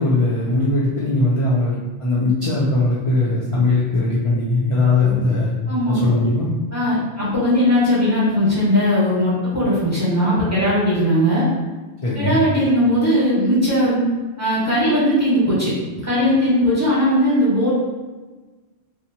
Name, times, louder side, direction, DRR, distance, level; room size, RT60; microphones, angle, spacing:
voice 1, 0.0-5.5 5.9-6.5 12.0-12.4, left 2 dB, 55° left, -6 dB, 0.3 m, -19 dB
voice 2, 5.7-6.0 6.7-11.4 12.1-14.0 14.4-17.7, equal, 15° right, -10 dB, 1.0 m, -18 dB
2.7 x 2.1 x 2.8 m, 1.3 s
omnidirectional pair, 1.1 m